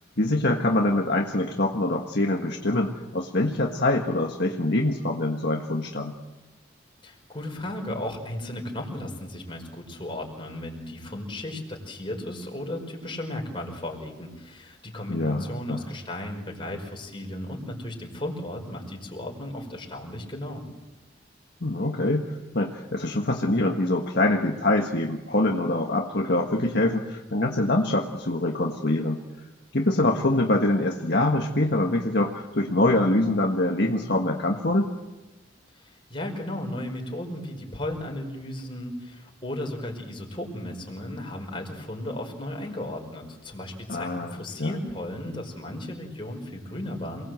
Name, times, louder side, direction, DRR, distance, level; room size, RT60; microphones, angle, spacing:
voice 1, 0.2-6.2 15.1-15.8 21.6-29.2 29.7-34.9 43.9-44.7, left 1 dB, 55° left, 1 dB, 1.7 m, -24 dB
voice 2, 7.0-20.6 35.8-47.2, left 1 dB, 25° left, 1 dB, 5.1 m, -35 dB
28.5 x 20.0 x 7.9 m, 1.1 s
head